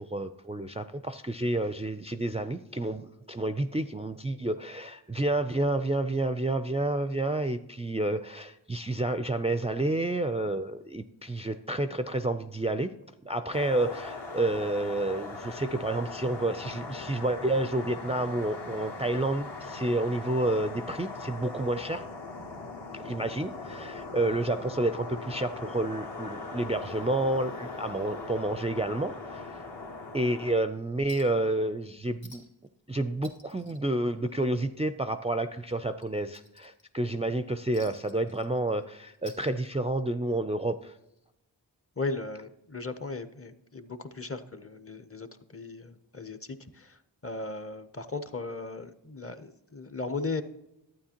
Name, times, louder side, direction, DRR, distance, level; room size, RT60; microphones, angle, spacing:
voice 1, 0.0-12.9 13.2-22.1 22.9-29.6 30.1-32.4 32.9-40.9, right 2 dB, 15° right, 9 dB, 0.4 m, -30 dB
sound 1, 13.5-30.6, left 3 dB, 65° left, 1.4 m, -40 dB
Chink clink, 31.1-31.5 31.8-31.9 32.2-32.7 33.0-34.7 35.0-35.2 35.6-37.1 37.7-38.8 39.1-40.1 41.2-41.3, left 2 dB, 80° left, 1.4 m, -54 dB
voice 2, 42.0-45.3 45.5-50.4, left 3 dB, 30° left, 12 dB, 0.7 m, -37 dB
11.5 x 9.1 x 2.9 m, 0.91 s
wide cardioid pair, 40°, 45 cm